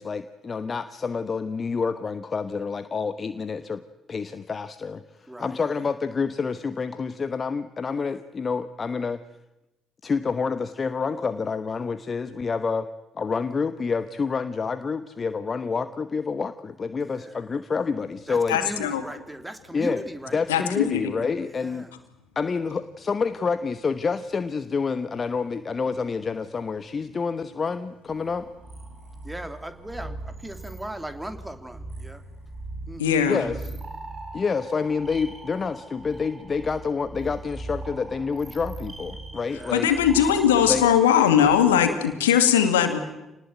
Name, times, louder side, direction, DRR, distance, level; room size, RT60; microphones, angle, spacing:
voice 1, 0.0-3.8 4.1-9.2 10.0-12.9 13.1-18.6 19.7-20.0 20.3-21.9 22.3-28.5 33.3-33.6 34.3-39.9 40.7-40.8, left 5 dB, 40° left, 12 dB, 1.1 m, -28 dB
voice 2, 5.3-5.6 17.1-17.5 18.3-20.7 21.5-21.9 29.2-32.2 32.9-33.3 39.4-40.0, right 1 dB, 10° right, 9 dB, 2.9 m, -38 dB
voice 3, 18.5-19.0 20.5-21.1 33.0-33.4 39.7-43.0, left 9 dB, 80° left, 8 dB, 2.2 m, -20 dB
sound 1, 28.1-41.9, right 2 dB, 30° right, 4.3 m, -40 dB
27.5 x 19.5 x 9.3 m, 0.95 s
figure-of-eight pair, 45°, 0 cm